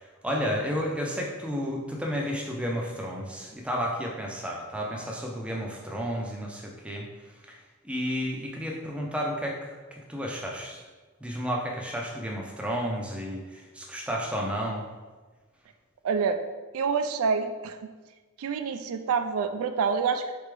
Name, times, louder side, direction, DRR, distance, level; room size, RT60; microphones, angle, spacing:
voice 1, 0.0-7.1 7.5-7.6 7.8-10.8 11.2-14.8, equal, 5° right, -1 dB, 0.5 m, -32 dB
voice 2, 16.0-16.4 16.7-17.9 18.4-20.4, right 5 dB, 75° right, 8 dB, 0.3 m, -27 dB
4.2 x 3.4 x 3.3 m, 1.3 s
head